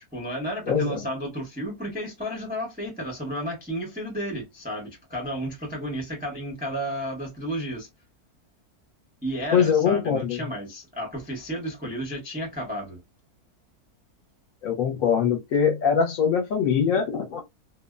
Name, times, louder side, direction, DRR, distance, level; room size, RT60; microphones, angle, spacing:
voice 1, 0.1-7.9 9.2-13.0, equal, 10° right, 0.4 m, -32 dB
voice 2, 0.7-1.0 9.5-10.4 14.6-17.4, left 7 dB, 65° left, 0.9 m, -22 dB
2.6 x 2.1 x 2.2 m
omnidirectional pair, 1.7 m